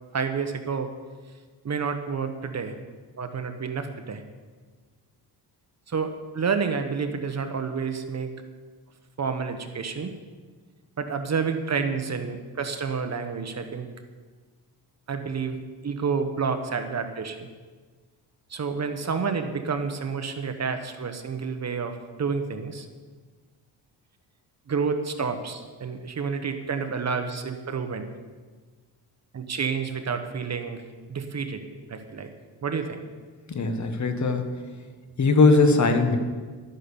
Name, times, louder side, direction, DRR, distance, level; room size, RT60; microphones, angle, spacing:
voice 1, 0.1-0.9 1.6-2.7 3.2-4.2 5.9-8.3 9.2-10.1 11.0-13.9 15.1-17.5 18.5-22.9 24.7-28.1 29.3-30.8 31.1-31.6 31.9-32.3 32.6-33.0, right 5 dB, 40° right, 7 dB, 1.2 m, -29 dB
voice 2, 33.5-34.6 35.2-36.2, left 3 dB, 40° left, 6 dB, 1.5 m, -20 dB
12.5 x 9.8 x 7.0 m, 1.5 s
cardioid pair, 120°, 42 cm